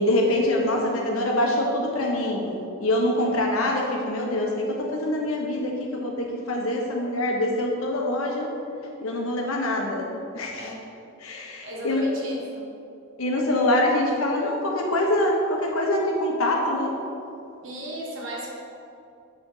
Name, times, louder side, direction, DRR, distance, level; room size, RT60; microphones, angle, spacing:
voice 1, 0.0-8.5 9.0-10.1 10.3-10.7 11.2-12.1 13.2-16.9, left 1 dB, 85° left, 0 dB, 1.3 m, -24 dB
voice 2, 10.5-10.9 11.6-12.7 17.6-18.5, equal, 65° right, -2 dB, 1.5 m, -35 dB
7.8 x 6.9 x 3.9 m, 2.6 s
head